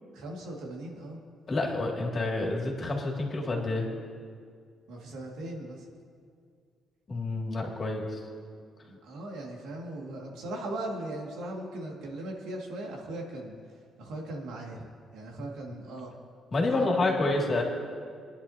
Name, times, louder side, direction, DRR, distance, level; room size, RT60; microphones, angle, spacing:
voice 1, 0.1-1.2 4.9-5.9 8.8-13.6 14.0-14.9 15.1-16.1 16.7-17.4, right 1 dB, 90° right, -1 dB, 2.1 m, -39 dB
voice 2, 1.5-3.9 7.1-8.2 16.5-17.6, left 2 dB, 40° left, -1 dB, 2.3 m, -28 dB
22.0 x 10.5 x 2.8 m, 2.2 s
cardioid pair, 90°, 0 cm